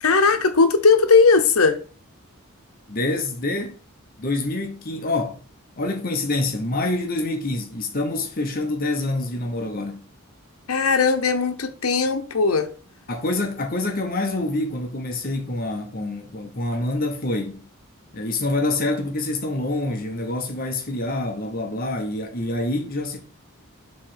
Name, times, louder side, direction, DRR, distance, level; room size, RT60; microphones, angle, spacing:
voice 1, 0.0-1.8 10.7-12.7, left 4 dB, 80° left, 0.9 m, -18 dB
voice 2, 2.9-3.8 4.2-5.4 5.8-10.1 13.1-17.6 18.1-23.2, left 2 dB, 40° left, 0.9 m, -26 dB
7.2 x 3.2 x 5.7 m
head